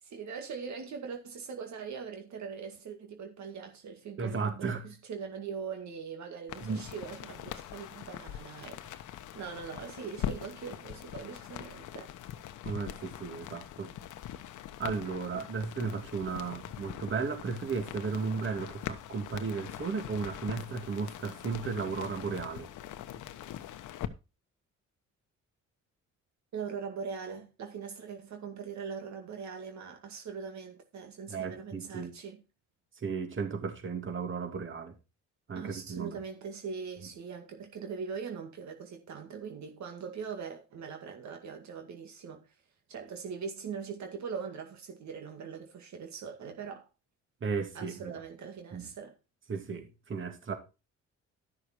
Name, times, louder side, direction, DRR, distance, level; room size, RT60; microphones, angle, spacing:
voice 1, 0.0-9.1 9.4-12.1 26.5-32.4 35.5-42.4 42.9-46.9 47.7-49.1, right 6 dB, 65° right, 2.1 m, -41 dB
voice 2, 4.2-4.9 6.6-6.9 12.6-13.9 14.8-22.7 31.3-32.1 33.0-35.0 35.5-36.2 47.4-48.2 48.7-48.9 49.5-50.5, right 5 dB, 40° right, 2.5 m, -35 dB
sound 1, 6.5-24.1, left 11 dB, 85° left, 1.1 m, -42 dB
12.5 x 6.6 x 4.5 m
cardioid pair, 90°, 30 cm